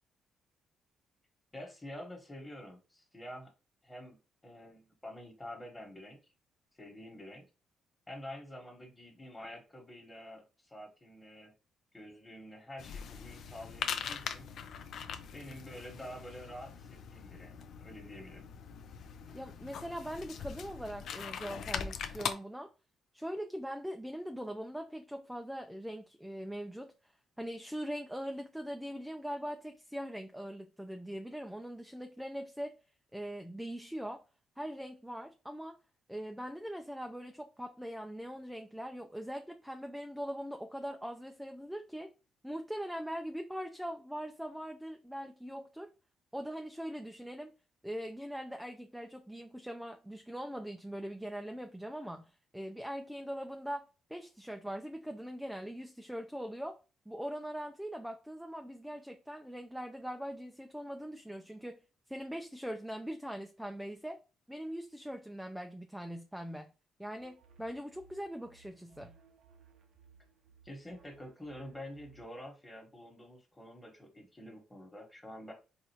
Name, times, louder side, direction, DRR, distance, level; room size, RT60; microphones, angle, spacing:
voice 1, 1.5-3.5 3.8-6.2 6.7-7.5 8.1-11.5 11.9-14.5 15.3-18.4 70.6-75.5, left 1 dB, 15° left, 1.2 m, -48 dB
sound 1, 12.8-22.3, left 7 dB, 70° left, 0.4 m, -41 dB
voice 2, 19.3-22.7 23.1-26.9 27.4-32.7 33.1-34.2 34.6-35.8 36.1-42.1 42.4-45.9 46.3-47.5 47.8-56.8 57.1-61.8 62.1-64.2 64.5-66.7 67.0-69.2, equal, 5° right, 0.3 m, -41 dB
sound 2, 67.2-72.4, right 6 dB, 70° right, 0.6 m, -62 dB
4.0 x 2.5 x 2.8 m
cardioid pair, 90°, 0 cm